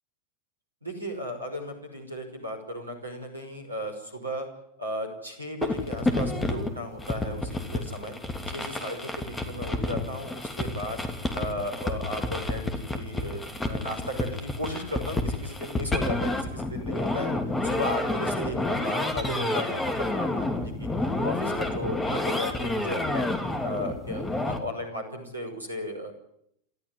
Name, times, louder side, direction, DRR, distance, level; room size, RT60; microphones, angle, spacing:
voice 1, 0.8-4.5 4.8-8.1 8.5-11.0 11.3-17.3 17.6-23.3 23.6-26.1, left 1 dB, 80° right, 5 dB, 5.6 m, -35 dB
sound 1, 5.6-24.6, left 2 dB, 10° left, 2.9 m, -30 dB
29.0 x 13.5 x 9.9 m, 0.75 s
figure-of-eight pair, 90°, 0 cm